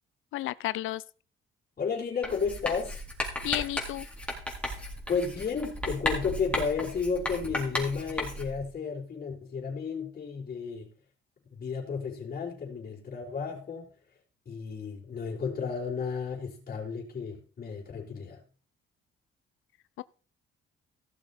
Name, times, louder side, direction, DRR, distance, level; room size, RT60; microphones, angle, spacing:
voice 1, 0.3-1.0 3.4-4.1 20.0-20.1, left 15 dB, 80° left, 0.5 m, -32 dB
voice 2, 1.8-3.0 5.1-10.9 11.5-13.9 14.5-18.4, left 5 dB, 45° left, 4.3 m, -33 dB
Writing, 2.2-8.6, left 1 dB, 5° left, 3.8 m, -35 dB
16.0 x 7.1 x 4.2 m
cardioid pair, 90°, 20 cm